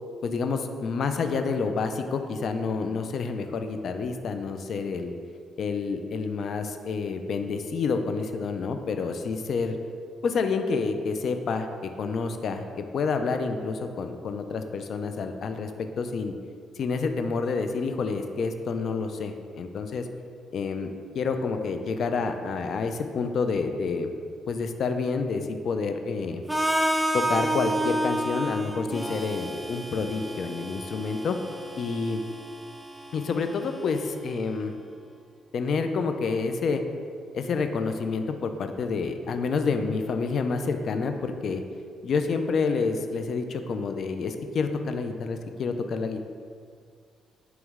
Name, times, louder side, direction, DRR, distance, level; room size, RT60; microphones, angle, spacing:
voice 1, 0.2-5.1 5.6-9.8 10.2-16.3 16.8-20.1 20.5-24.1 24.5-26.4 27.1-31.4 31.8-32.2 33.1-34.7 35.5-36.8 37.3-41.6 42.0-46.2, left 4 dB, 60° left, 7 dB, 0.5 m, -28 dB
Harmonica, 26.5-34.4, right 1 dB, 5° right, 0.5 m, -30 dB
9.2 x 3.1 x 3.6 m, 2.1 s
cardioid pair, 90°, 0 cm